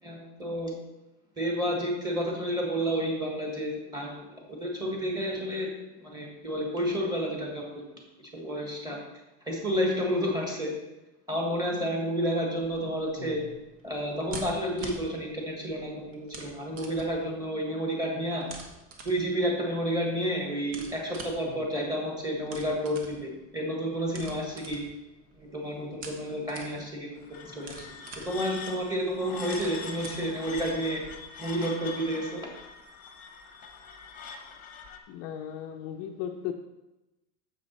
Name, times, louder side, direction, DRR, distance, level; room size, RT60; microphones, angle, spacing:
voice 1, 0.0-0.7 1.4-5.7 6.0-9.0 9.4-10.7 11.3-13.4 13.8-18.4 19.0-24.8 25.3-27.9 28.2-31.0 31.4-32.5, equal, 10° right, 0 dB, 1.5 m, -30 dB
sound 1, 12.6-31.1, right 4 dB, 70° right, 1.8 m, -47 dB
voice 2, 13.2-13.6 21.5-21.7 35.1-36.5, left 9 dB, 40° left, 3 dB, 0.5 m, -37 dB
sound 2, 27.2-35.0, left 5 dB, 20° left, 0.9 m, -43 dB
9.7 x 7.3 x 4.2 m, 0.99 s
cardioid pair, 175°, 38 cm